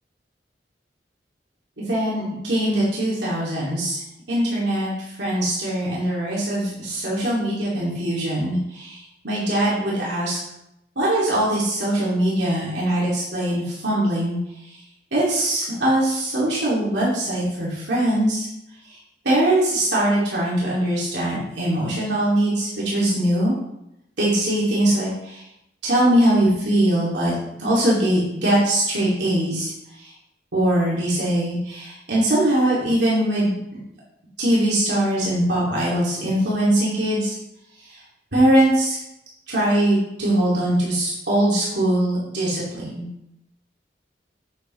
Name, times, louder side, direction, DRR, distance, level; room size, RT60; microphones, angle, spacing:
voice 1, 1.8-4.0 4.3-4.9 5.2-10.4 11.0-14.4 15.1-18.5 19.2-23.5 24.2-25.4 25.8-27.3 27.6-29.7 30.0-30.1 30.5-33.5 34.4-37.4 38.3-39.0 39.5-43.1, right 1 dB, 75° right, -7 dB, 2.5 m, -21 dB
8.9 x 8.4 x 3.2 m, 0.84 s
head